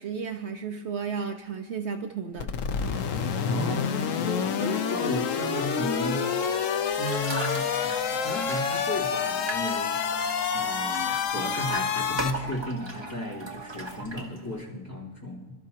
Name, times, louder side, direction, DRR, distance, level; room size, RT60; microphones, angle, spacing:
voice 1, 0.0-2.5, right 6 dB, 65° right, 6 dB, 0.9 m, -33 dB
sound 1, 2.4-12.3, left 7 dB, 85° left, 1.1 m, -28 dB
voice 2, 3.4-3.9 4.2-6.2 7.0-7.6 8.2-10.0 10.5-15.5, left 1 dB, 15° left, -7 dB, 3.5 m, -33 dB
sound 2, 5.6-14.0, right 2 dB, 5° right, 2.5 m, -45 dB
sound 3, 6.9-14.6, right 1 dB, 20° right, 1.2 m, -39 dB
26.5 x 13.0 x 2.9 m, 1.4 s
omnidirectional pair, 1.3 m